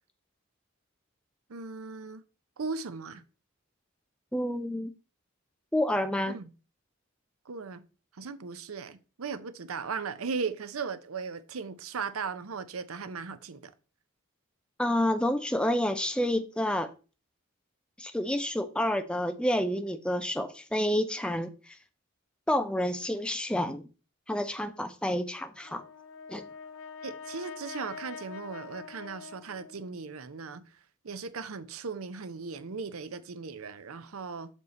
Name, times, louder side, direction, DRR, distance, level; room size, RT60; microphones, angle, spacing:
voice 1, 1.5-2.2 2.6-3.2 6.3-6.5 7.5-7.8 8.2-13.7 27.0-30.6 31.0-34.5, right 5 dB, 90° right, 0.7 m, -37 dB
voice 2, 4.3-4.9 5.7-6.4 14.8-16.9 18.0-21.5 22.5-23.8 24.3-25.8 26.3-26.4, left 1 dB, 5° left, 0.5 m, -29 dB
Brass instrument, 25.6-30.1, left 5 dB, 85° left, 0.9 m, -45 dB
6.5 x 4.5 x 4.1 m
head